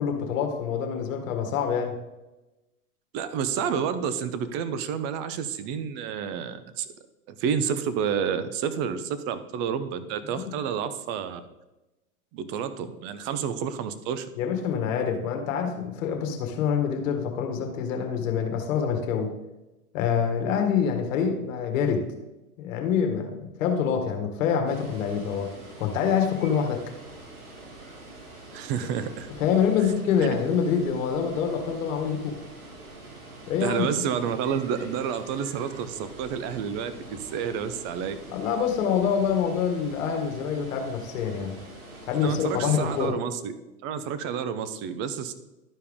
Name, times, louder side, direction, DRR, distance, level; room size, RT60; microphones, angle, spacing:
voice 1, 0.0-2.0 10.3-10.5 14.4-19.3 19.9-22.1 22.6-25.5 25.8-26.9 29.4-32.3 33.5-33.9 38.3-41.6 42.1-43.2, left 7 dB, 55° left, 4 dB, 1.7 m, -26 dB
voice 2, 3.1-6.9 7.3-11.4 12.3-14.3 28.5-29.3 33.6-38.2 42.2-43.5 43.8-45.3, right 7 dB, 25° right, 12 dB, 0.5 m, -29 dB
Water, 24.7-43.1, right 2 dB, 75° right, 3.1 m, -45 dB
12.0 x 4.7 x 3.6 m, 1.0 s
hypercardioid pair, 130°, 45 cm